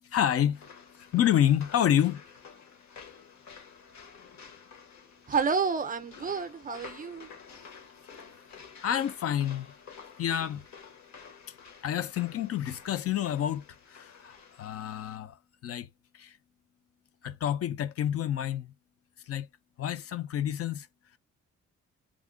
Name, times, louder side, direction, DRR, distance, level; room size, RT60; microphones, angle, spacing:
voice 1, 0.0-0.7 0.9-2.2 6.7-6.8 8.8-9.7 10.2-10.6 11.8-15.4 15.6-15.9 16.1-16.4 17.2-18.7 19.3-19.5 19.8-20.9, left 10 dB, 55° left, 0.5 m, -28 dB
sound 1, 0.5-15.2, left 6 dB, 70° left, 1.2 m, -51 dB
voice 2, 5.3-7.3, right 5 dB, 30° right, 0.5 m, -29 dB
3.6 x 2.0 x 3.7 m
cardioid pair, 130°, 29 cm